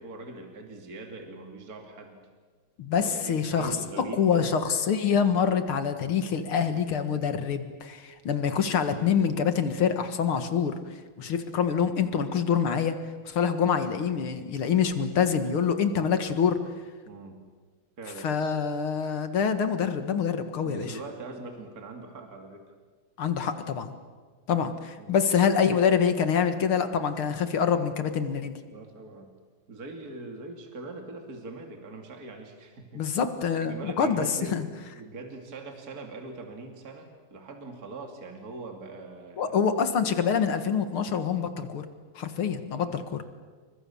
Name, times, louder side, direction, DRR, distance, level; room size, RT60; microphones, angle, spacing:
voice 1, 0.0-2.2 2.9-4.5 17.0-17.4 18.0-18.3 20.6-22.6 25.0-25.2 28.7-29.3 29.7-39.6 42.8-43.1, right 3 dB, 40° right, 3 dB, 3.0 m, -42 dB
voice 2, 2.8-3.8 4.1-10.8 11.2-13.0 13.3-16.6 18.2-21.0 23.2-23.9 24.5-28.5 33.0-34.7 39.4-41.9 42.2-43.2, left 7 dB, 75° left, 9 dB, 2.5 m, -26 dB
28.5 x 25.0 x 7.1 m, 1.5 s
omnidirectional pair, 2.4 m